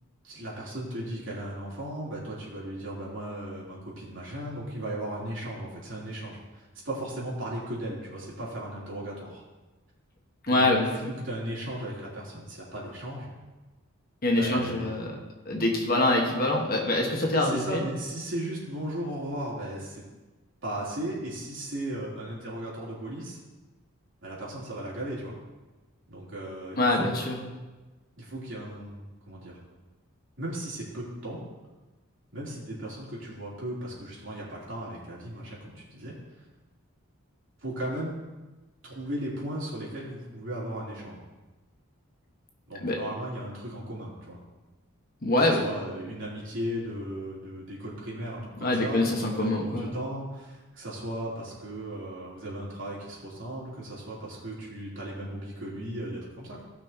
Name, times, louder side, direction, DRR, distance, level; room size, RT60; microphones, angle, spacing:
voice 1, 0.2-9.4 10.5-11.0 11.2-13.3 14.4-15.0 17.2-20.0 20.6-23.4 24.2-25.3 26.1-27.1 28.2-29.6 30.4-31.4 32.3-36.1 37.6-38.2 38.8-41.2 42.7-44.4 45.4-56.6, right 1 dB, 60° right, -6 dB, 3.2 m, -36 dB
voice 2, 10.5-11.2 14.2-15.1 15.4-17.8 26.8-27.4 42.8-43.0 45.2-45.6 48.6-49.9, left 2 dB, 40° left, 0 dB, 1.4 m, -25 dB
17.5 x 5.9 x 2.9 m, 1.2 s
head